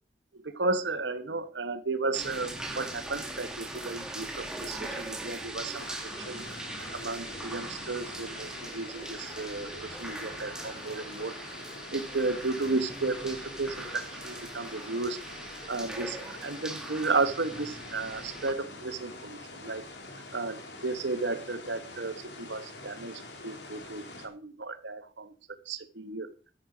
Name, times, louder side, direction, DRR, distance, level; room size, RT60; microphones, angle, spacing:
voice 1, 0.3-6.0 6.3-6.5 6.7-11.3 11.9-15.2 15.7-19.8 20.3-25.3 25.7-26.3, right 3 dB, 85° right, 12 dB, 1.2 m, -33 dB
sound 1, 2.1-18.5, right 2 dB, 5° right, 1.9 m, -41 dB
sound 2, 5.7-24.3, left 2 dB, 75° left, 2.9 m, -45 dB
13.0 x 10.0 x 5.0 m, 0.39 s
head